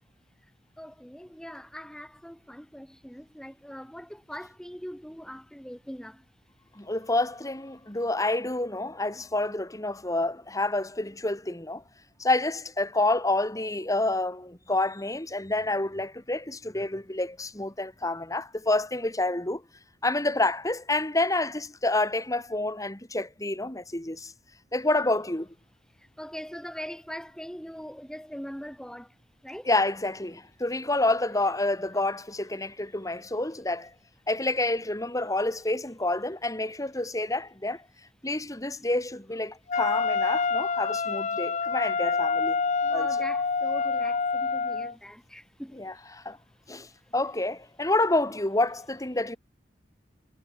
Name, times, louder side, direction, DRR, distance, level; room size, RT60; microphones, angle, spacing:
voice 1, 0.8-6.2 26.0-29.1 29.4-29.7 42.8-46.0, equal, 5° left, 6.6 m, -41 dB
voice 2, 6.7-11.8 12.2-19.6 20.0-24.3 24.7-25.5 29.6-33.9 34.3-37.8 38.2-42.6 42.9-43.1 45.8-46.4 46.7-49.4, left 2 dB, 20° left, 2.6 m, -28 dB
Wind instrument woodwind instrument, 39.7-44.9, left 5 dB, 40° left, 0.8 m, -27 dB
head